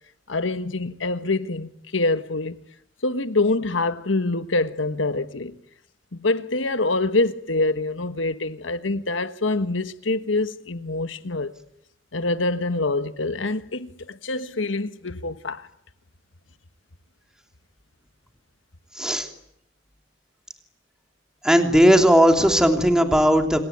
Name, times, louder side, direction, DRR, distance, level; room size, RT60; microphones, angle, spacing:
voice 1, 0.3-2.6 3.0-5.6 6.1-11.5 12.1-15.7, left 2 dB, 80° left, 1.5 m, -25 dB
voice 2, 21.4-23.6, equal, 5° right, 3.1 m, -17 dB
27.5 x 22.5 x 9.4 m
head